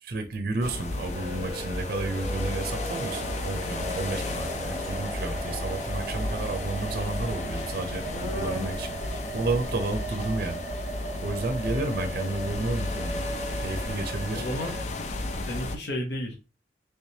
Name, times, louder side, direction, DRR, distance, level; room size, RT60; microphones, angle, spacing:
voice 1, 0.0-10.6 11.2-13.2 13.6-14.4, right 2 dB, 50° right, 0.5 m, -32 dB
sound 1, 0.6-15.8, left 2 dB, 40° left, 0.4 m, -33 dB
sound 2, 1.1-14.8, right 2 dB, 15° right, 1.1 m, -38 dB
sound 3, 4.8-9.9, equal, 80° left, 1.7 m, -41 dB
voice 2, 14.3-14.8 15.5-16.4, left 1 dB, 65° left, 0.9 m, -32 dB
3.3 x 3.2 x 2.7 m
head